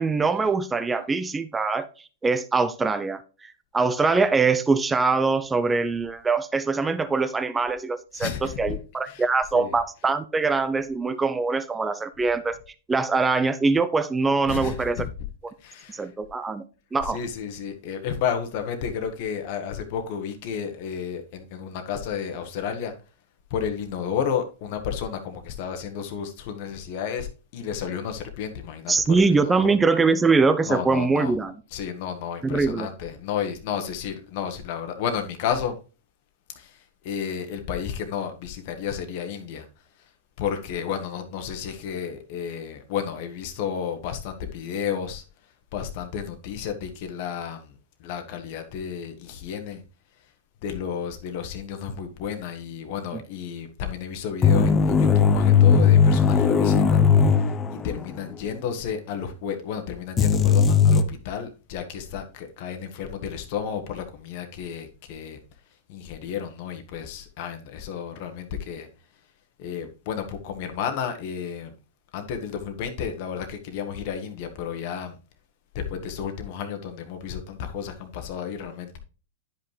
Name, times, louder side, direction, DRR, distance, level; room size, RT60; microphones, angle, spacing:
voice 1, 0.0-1.9 2.2-12.6 12.9-15.1 15.9-16.6 16.9-17.2 28.9-31.5 32.4-32.9 53.1-53.2, right 4 dB, 15° right, 0.6 m, -23 dB
voice 2, 8.1-8.8 9.0-9.2 9.5-9.7 14.5-15.1 15.6-16.1 17.0-22.9 23.5-29.7 30.7-31.3 31.7-35.8 36.5-39.7 40.0-40.1 40.4-45.2 45.7-47.7 48.0-49.8 50.2-50.3 50.6-65.4 65.9-68.9 69.6-71.7 72.1-75.2 75.7-79.0, left 7 dB, 55° left, 1.3 m, -32 dB
sound 1, 54.4-58.2 58.4-58.5 60.2-61.0, left 6 dB, 20° left, 0.7 m, -18 dB
10.0 x 5.4 x 3.3 m
hypercardioid pair, 110°, 0 cm